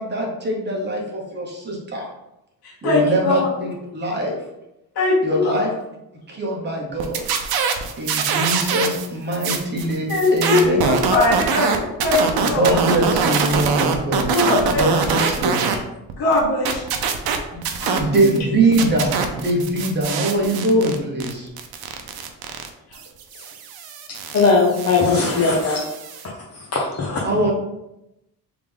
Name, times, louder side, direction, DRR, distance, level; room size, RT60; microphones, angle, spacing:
voice 1, 0.0-2.1 2.8-4.4 5.2-5.7 6.3-7.3 8.0-10.8 12.4-14.3 14.7-15.8 17.5-21.5 27.2-27.5, right 1 dB, 30° right, -1 dB, 1.0 m, -22 dB
voice 2, 2.6-3.5 4.9-5.5 10.1-12.7 14.3-15.3 16.2-16.8 17.8-18.4 22.9-23.0, left 2 dB, 85° left, -6 dB, 1.5 m, -21 dB
sound 1, 7.0-9.1 9.3-15.8 16.1-18.4 18.7-26.2, right 6 dB, 80° right, 0.6 m, -24 dB
voice 3, 24.3-25.8 26.7-27.2, left 4 dB, 40° left, -3 dB, 0.8 m, -18 dB
3.6 x 3.4 x 3.5 m, 0.88 s
cardioid pair, 140°, 36 cm